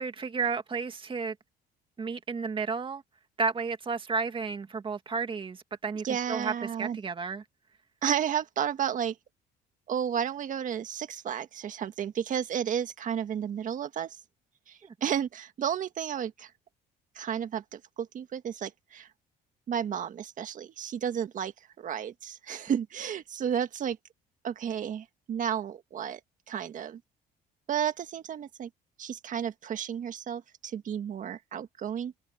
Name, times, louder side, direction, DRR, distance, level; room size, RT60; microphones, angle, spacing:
voice 1, 0.0-1.4 2.0-3.0 3.4-6.5 6.8-7.4 14.8-14.9, right 5 dB, 30° right, 2.2 m, -32 dB
voice 2, 6.0-7.0 8.0-9.2 9.9-14.2 14.7-16.5 17.2-19.1 19.7-24.0 24.4-26.2 26.5-27.0 27.7-28.7 29.0-32.1, right 8 dB, 50° right, 1.7 m, -32 dB
cardioid pair, 110°, 17 cm